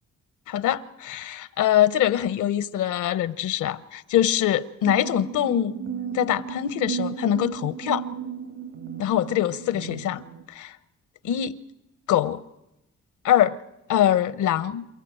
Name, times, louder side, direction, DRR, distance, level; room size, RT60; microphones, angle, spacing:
voice 1, 0.5-5.7 6.1-8.0 9.0-10.8 11.2-11.6 12.1-12.4 13.2-13.6 13.9-14.9, left 11 dB, 75° left, 0.9 m, -23 dB
sound 1, 4.8-10.4, right 7 dB, 70° right, 2.1 m, -34 dB
28.0 x 14.0 x 8.9 m
cardioid pair, 90°, 30 cm